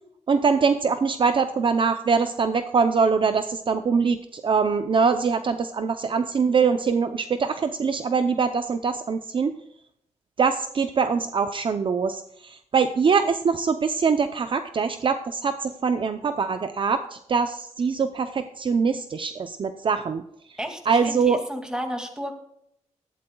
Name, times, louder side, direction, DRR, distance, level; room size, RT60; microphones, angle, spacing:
voice 1, 0.3-9.5 10.4-20.2 20.9-21.4, right 5 dB, 45° right, 8 dB, 0.6 m, -23 dB
voice 2, 20.6-22.3, equal, 5° right, 4 dB, 2.3 m, -32 dB
17.5 x 12.5 x 2.3 m, 0.74 s
wide cardioid pair, 130°, 12 cm